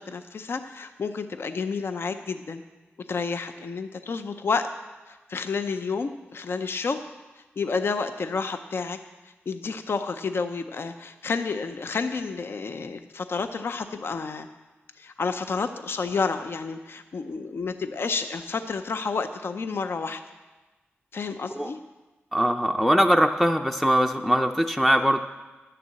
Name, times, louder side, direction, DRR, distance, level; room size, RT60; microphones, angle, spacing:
voice 1, 0.0-2.6 3.1-4.7 5.1-7.0 7.4-9.0 9.5-14.5 15.0-20.2 21.1-21.8, left 4 dB, 60° left, 9 dB, 0.6 m, -30 dB
voice 2, 22.3-25.2, equal, 5° left, 4 dB, 0.5 m, -21 dB
11.0 x 6.8 x 7.5 m, 1.2 s
wide cardioid pair, 90°, 4 cm